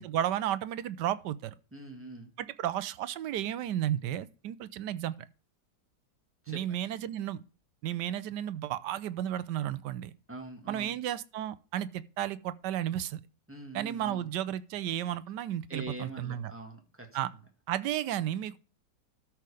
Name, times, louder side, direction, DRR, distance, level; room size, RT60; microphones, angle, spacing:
voice 1, 0.0-1.5 2.4-5.1 6.5-7.4 7.8-10.1 10.7-13.2 13.7-16.5 17.1-17.3 17.7-18.6, right 11 dB, 85° right, 1.3 m, -33 dB
voice 2, 1.7-2.3 6.4-6.6 10.3-11.0 13.5-14.3 15.7-17.1, right 2 dB, 10° right, 1.8 m, -43 dB
13.0 x 4.8 x 5.0 m
omnidirectional pair, 1.8 m